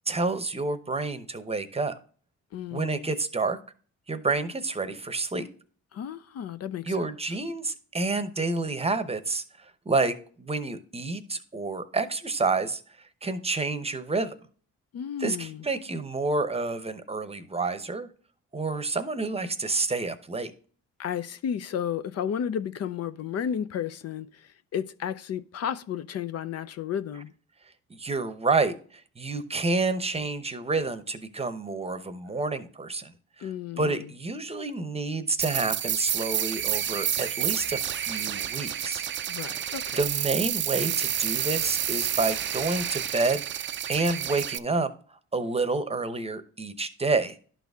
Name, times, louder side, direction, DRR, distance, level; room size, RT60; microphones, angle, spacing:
voice 1, 0.1-2.0 2.7-3.6 4.1-5.5 6.8-9.4 9.9-12.8 13.2-14.3 15.2-18.1 18.5-20.5 27.9-33.1 33.4-33.5 33.8-39.0 39.9-44.9 45.3-47.4, right 3 dB, 20° right, 0.8 m, -29 dB
voice 2, 2.5-3.1 5.9-7.1 14.9-15.6 21.0-27.3 33.4-34.0 39.3-40.0, left 8 dB, 55° left, 0.5 m, -33 dB
sound 1, 35.4-44.6, right 10 dB, 40° right, 0.4 m, -29 dB
11.5 x 4.0 x 3.5 m
cardioid pair, 90°, 30 cm